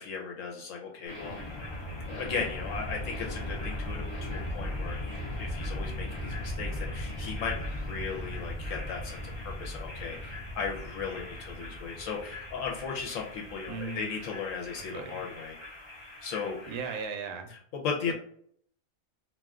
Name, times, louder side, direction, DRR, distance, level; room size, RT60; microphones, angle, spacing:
voice 1, 0.0-1.4 2.1-5.0 5.4-15.6 16.2-16.7 17.5-18.1, left 5 dB, 75° left, 0 dB, 0.9 m, -36 dB
sound 1, 1.1-17.1, left 1 dB, 35° left, 0.5 m, -38 dB
voice 2, 13.7-14.1 14.8-15.2 16.7-17.5 18.1-18.2, right 5 dB, 75° right, 6 dB, 0.9 m, -37 dB
2.4 x 2.2 x 3.5 m, 0.64 s
omnidirectional pair, 1.4 m